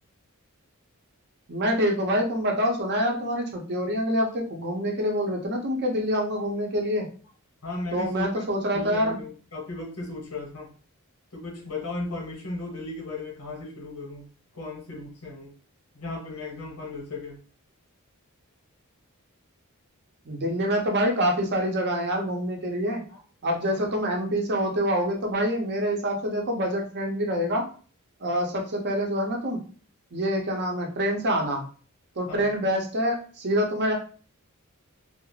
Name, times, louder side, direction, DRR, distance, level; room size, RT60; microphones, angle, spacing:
voice 1, 1.5-7.1 7.9-9.2 20.2-23.0 23.4-27.6 28.2-29.6 30.1-31.6 32.2-33.9, equal, 50° right, 0.6 m, -26 dB
voice 2, 7.6-8.4 8.7-10.7 11.3-14.3 14.5-15.5 15.9-17.4 23.1-23.2 23.8-23.9 32.3-32.5, left 2 dB, 80° left, 0.9 m, -36 dB
2.3 x 2.0 x 3.1 m
head